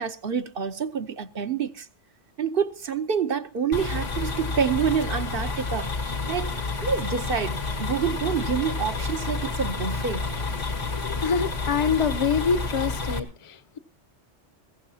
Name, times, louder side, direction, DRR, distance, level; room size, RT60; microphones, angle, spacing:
voice 1, 0.0-1.9 2.4-10.3, right 6 dB, 55° right, 1.0 m, -28 dB
sound 1, 3.7-13.2, left 3 dB, 85° left, 2.3 m, -30 dB
voice 2, 11.0-13.8, left 6 dB, 30° left, 0.8 m, -26 dB
20.5 x 16.0 x 2.8 m
omnidirectional pair, 1.2 m